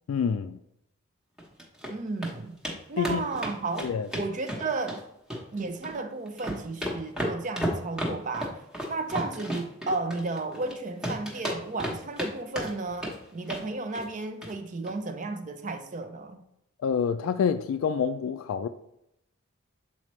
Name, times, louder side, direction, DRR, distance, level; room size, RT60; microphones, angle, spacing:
voice 1, 0.1-0.6 3.0-3.2 3.8-4.1 16.8-18.7, left 6 dB, 75° left, 0.3 m, -27 dB
sound 1, 1.4-1.9 2.2-2.3 2.6-2.8 3.0-5.0 5.3-6.0 6.3-10.7 11.0-12.3 12.6-13.2 13.5-13.7 13.9-14.1 14.4-14.5 14.8-14.9, equal, 5° right, 1.0 m, -33 dB
voice 2, 1.9-2.6 2.9-5.0 5.5-8.6 8.9-16.4, right 3 dB, 35° right, 0.5 m, -33 dB
7.3 x 4.2 x 3.1 m
head